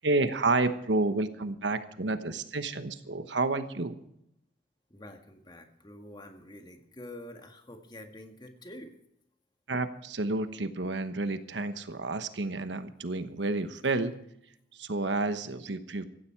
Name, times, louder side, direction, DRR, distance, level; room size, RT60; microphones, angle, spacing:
voice 1, 0.0-3.9 9.7-14.2 14.8-16.0, right 2 dB, 85° right, 10 dB, 1.2 m, -30 dB
voice 2, 4.9-8.9, left 1 dB, 25° left, 5 dB, 1.9 m, -47 dB
16.5 x 14.5 x 4.6 m, 0.77 s
head